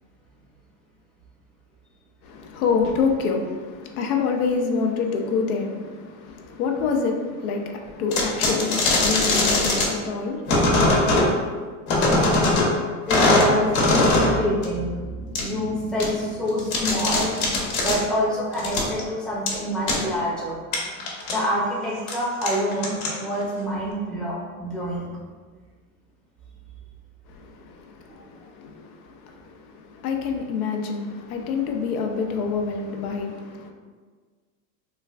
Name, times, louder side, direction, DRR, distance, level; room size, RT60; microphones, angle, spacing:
voice 1, 2.2-11.5 27.3-33.7, left 5 dB, 85° left, 0.6 m, -27 dB
sound 1, 8.1-9.9 10.5-11.3 11.9-12.7 13.1-14.4 14.6-14.7 15.4-15.5 16.0-16.1 16.5-18.0 18.5-19.0 19.5-19.6 19.9-20.0 20.7-21.4 22.0-22.1 22.4-23.4, left 2 dB, 60° left, 0.9 m, -20 dB
voice 2, 13.1-20.6 21.3-25.1, equal, ahead, 0.5 m, -27 dB
3.1 x 2.2 x 2.4 m
hypercardioid pair, 105°, 43 cm